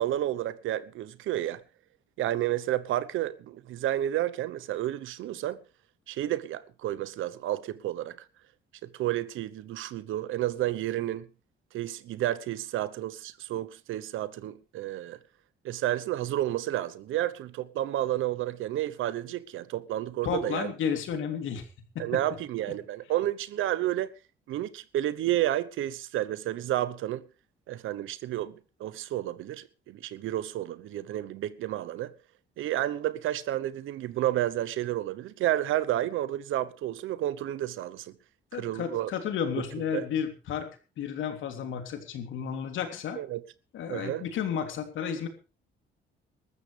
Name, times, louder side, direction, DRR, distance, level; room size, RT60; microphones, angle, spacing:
voice 1, 0.0-1.6 2.2-5.6 6.1-8.2 8.8-11.3 11.7-15.2 15.6-20.7 22.0-24.1 24.5-27.2 27.7-28.5 28.8-32.1 32.6-38.1 38.5-39.1 39.9-40.0 43.2-43.4 43.9-44.3, right 13 dB, 85° right, 1.0 m, -31 dB
voice 2, 20.2-21.6 21.9-22.2 38.5-40.7 41.0-43.2 43.7-45.3, left 7 dB, 80° left, 3.2 m, -32 dB
20.5 x 13.5 x 3.4 m
cardioid pair, 90°, 20 cm